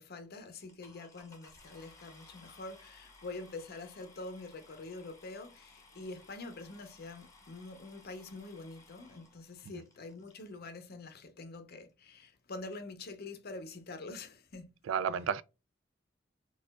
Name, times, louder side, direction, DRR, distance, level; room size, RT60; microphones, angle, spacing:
voice 1, 0.0-14.7, left 3 dB, 55° left, 0.7 m, -46 dB
sound 1, 0.6-10.5 11.3-11.4 11.9-12.0 12.2-12.5, left 3 dB, 15° left, 0.9 m, -59 dB
voice 2, 14.8-15.4, right 7 dB, 85° right, 0.3 m, -32 dB
4.3 x 2.4 x 2.2 m
head